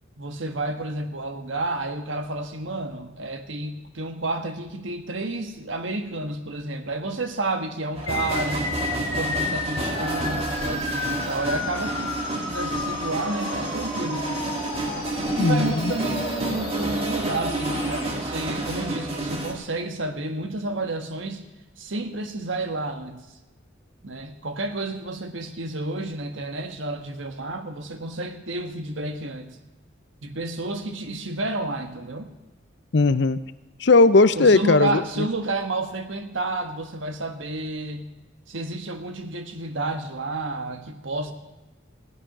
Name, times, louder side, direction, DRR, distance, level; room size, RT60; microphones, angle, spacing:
voice 1, 0.2-8.7 9.0-14.5 15.0-15.1 15.3-21.4 21.8-23.2 24.0-29.6 30.2-32.3 34.3-38.1 38.5-41.3, right 2 dB, 75° right, 7 dB, 1.4 m, -30 dB
sound 1, 7.9-19.5, right 2 dB, 30° right, 1.9 m, -29 dB
sound 2, 8.1-18.1, left 4 dB, 25° left, 1.7 m, -33 dB
voice 2, 15.4-15.9 32.9-33.4 33.8-35.3, left 3 dB, 60° left, 14 dB, 0.6 m, -18 dB
16.0 x 11.5 x 6.1 m, 1.1 s
head